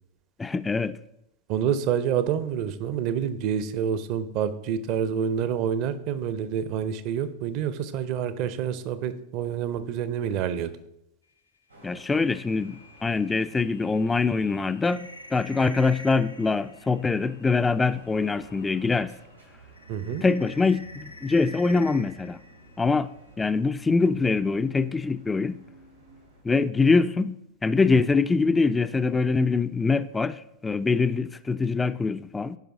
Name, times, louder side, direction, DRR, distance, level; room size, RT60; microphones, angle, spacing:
voice 1, 0.4-1.0 11.8-19.1 20.1-22.4 22.8-23.1 23.4-25.6 26.4-27.4 27.6-32.6, left 4 dB, 10° left, 0.3 m, -24 dB
voice 2, 1.5-10.7 19.9-20.2, right 8 dB, 45° right, 0.6 m, -28 dB
sound 1, 11.7-26.4, right 1 dB, 90° right, 3.2 m, -53 dB
sound 2, 12.1-19.0 19.3-23.3, left 1 dB, 80° left, 0.5 m, -48 dB
10.5 x 5.1 x 3.7 m
figure-of-eight pair, 90°, 0 cm